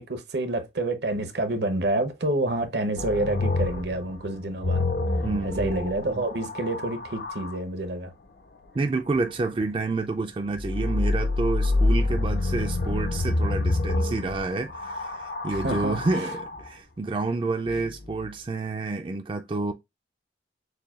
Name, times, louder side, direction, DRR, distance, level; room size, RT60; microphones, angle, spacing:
voice 1, 0.0-4.9 5.4-8.1 15.5-16.2, right 2 dB, 75° right, 0.8 m, -28 dB
sound 1, 3.0-7.6 10.6-16.7 17.7-18.3, left 2 dB, 60° left, 0.5 m, -27 dB
voice 2, 5.2-6.2 8.7-19.7, right 3 dB, 30° right, 0.3 m, -29 dB
6.6 x 2.2 x 2.3 m
head